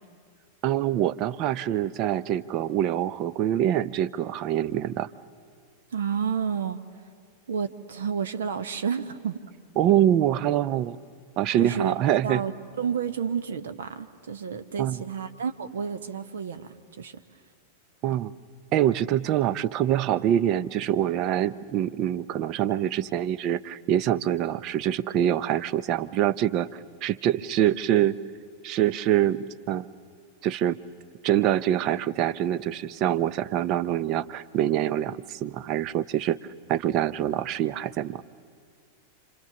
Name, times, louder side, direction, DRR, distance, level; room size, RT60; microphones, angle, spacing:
voice 1, 0.6-5.1 9.8-11.0 11.4-12.4 14.8-15.0 18.0-18.3 18.7-28.2 28.6-29.9 30.4-30.8 31.2-36.4 36.7-38.2, right 11 dB, 40° right, 17 dB, 0.7 m, -25 dB
voice 2, 5.9-6.8 7.5-9.4 11.6-12.0 12.2-17.2, right 7 dB, 65° right, 10 dB, 1.1 m, -30 dB
30.0 x 26.5 x 7.1 m, 2.1 s
figure-of-eight pair, 90°, 0 cm